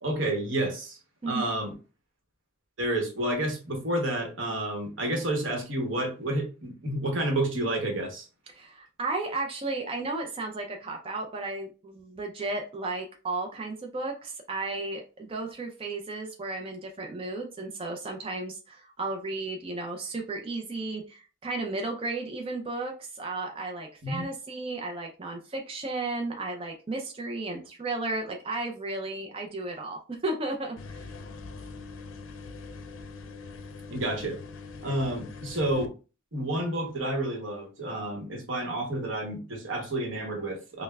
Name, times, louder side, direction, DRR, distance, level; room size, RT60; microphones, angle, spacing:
voice 1, 0.0-1.0 1.3-1.7 2.8-8.3 24.0-24.3 33.9-34.4 34.8-35.9 36.3-40.8, right 1 dB, 75° right, 1.0 m, -30 dB
voice 2, 8.5-31.1, right 2 dB, 30° right, 0.5 m, -34 dB
sound 1, 30.8-35.9, left 4 dB, 85° left, 0.5 m, -43 dB
5.4 x 2.1 x 2.3 m
head